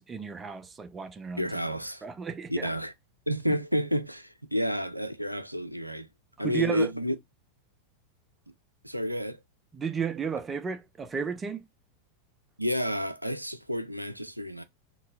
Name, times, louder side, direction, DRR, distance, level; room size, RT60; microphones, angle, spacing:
voice 1, 0.0-1.5 2.0-2.7 6.4-6.9 9.7-11.6, right 6 dB, 20° right, 0.5 m, -33 dB
voice 2, 1.4-2.0 2.5-2.9 3.3-6.1 6.4-7.2 8.8-9.4 12.6-14.6, equal, 90° right, 0.4 m, -30 dB
3.8 x 2.7 x 2.4 m
figure-of-eight pair, 90°, 0 cm